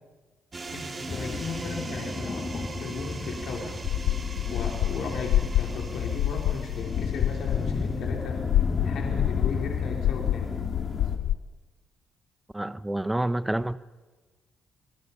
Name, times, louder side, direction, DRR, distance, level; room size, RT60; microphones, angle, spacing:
sound 1, 0.5-8.1, right 3 dB, 30° right, 2.4 m, -40 dB
voice 1, 0.7-3.8 4.5-8.4 8.8-10.5, left 4 dB, 70° left, 1 dB, 3.1 m, -36 dB
sound 2, 1.1-11.2, left 4 dB, 35° left, 2.3 m, -34 dB
sound 3, 3.8-11.4, left 12 dB, 90° left, 0.5 m, -28 dB
voice 2, 12.5-13.8, right 1 dB, 10° right, 16 dB, 0.8 m, -28 dB
26.0 x 18.0 x 5.6 m, 1.2 s
cardioid pair, 90°, 0 cm